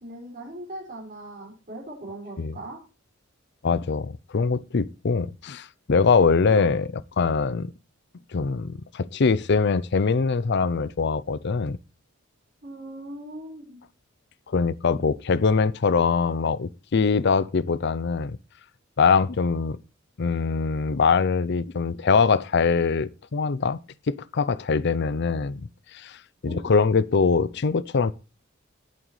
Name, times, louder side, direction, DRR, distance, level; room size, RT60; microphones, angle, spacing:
voice 1, 0.0-2.8 6.4-6.7 12.6-13.8 26.4-26.7, right 1 dB, 45° right, 5.6 m, -39 dB
voice 2, 3.6-6.9 7.2-7.7 8.3-11.8 14.5-18.4 19.0-19.8 20.2-23.8 24.1-26.2 26.4-28.1, left 5 dB, 55° left, 0.5 m, -23 dB
18.5 x 7.6 x 3.2 m
head